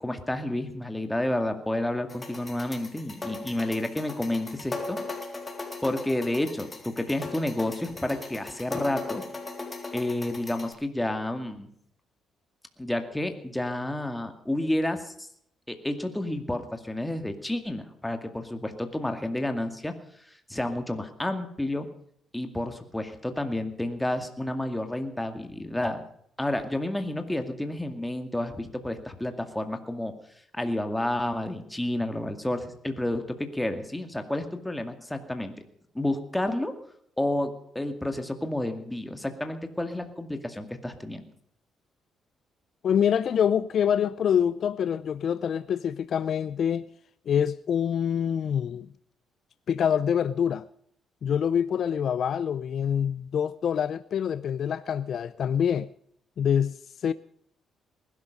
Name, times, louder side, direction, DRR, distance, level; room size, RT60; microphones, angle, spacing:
voice 1, 0.0-5.0 5.8-9.2 9.9-11.7 12.8-15.3 15.7-19.9 20.5-21.9 22.3-26.0 26.4-30.1 30.5-35.5 35.9-36.7 37.2-41.2, left 1 dB, 10° left, 2.2 m, -30 dB
sound 1, 2.1-10.7, left 3 dB, 25° left, 3.8 m, -38 dB
voice 2, 42.8-46.9 47.3-48.9 49.7-50.6 51.2-55.9 56.4-57.1, left 8 dB, 60° left, 0.5 m, -26 dB
20.0 x 12.0 x 5.3 m
cardioid pair, 90°, 0 cm